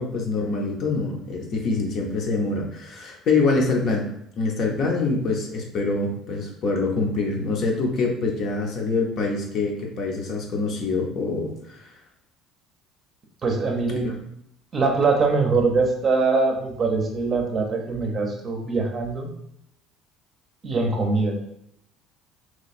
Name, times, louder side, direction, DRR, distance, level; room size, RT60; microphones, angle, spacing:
voice 1, 0.0-4.1 4.4-11.9 13.9-14.2, left 3 dB, 50° left, 0 dB, 0.8 m, -25 dB
voice 2, 13.4-14.1 14.7-19.3 20.6-21.4, right 3 dB, 30° right, 2 dB, 0.7 m, -23 dB
3.0 x 2.3 x 4.2 m, 0.77 s
cardioid pair, 140°, 0 cm